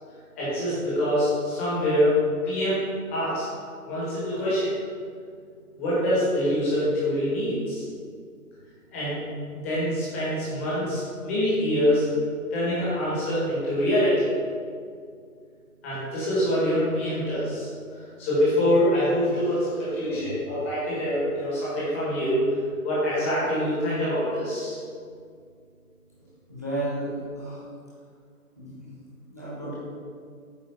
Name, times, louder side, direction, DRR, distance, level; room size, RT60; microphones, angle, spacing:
voice 1, 0.4-2.1 2.4-2.8 3.1-3.5 3.8-4.7 5.8-7.8 8.9-9.2 9.5-12.1 12.5-14.3 15.8-17.7 18.2-22.4 22.8-24.8, equal, 10° left, -9 dB, 1.2 m, -25 dB
voice 2, 26.5-27.6 28.6-28.9 29.3-29.7, right 1 dB, 10° right, -9 dB, 0.7 m, -32 dB
8.5 x 3.7 x 5.5 m, 2.2 s
hypercardioid pair, 165°, 45 cm